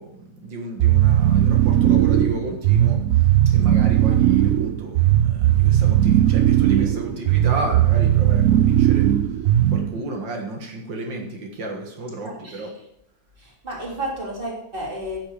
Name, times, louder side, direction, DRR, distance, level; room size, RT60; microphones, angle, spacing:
voice 1, 0.0-3.0 3.5-9.1 9.7-12.7, right 1 dB, 90° right, 2 dB, 2.5 m, -32 dB
sound 1, 0.8-10.0, right 12 dB, 70° right, 0.8 m, -17 dB
voice 2, 6.7-7.1 12.2-12.7 13.4-15.2, right 1 dB, 30° right, -2 dB, 3.5 m, -32 dB
15.0 x 7.6 x 5.1 m, 0.84 s
omnidirectional pair, 1.9 m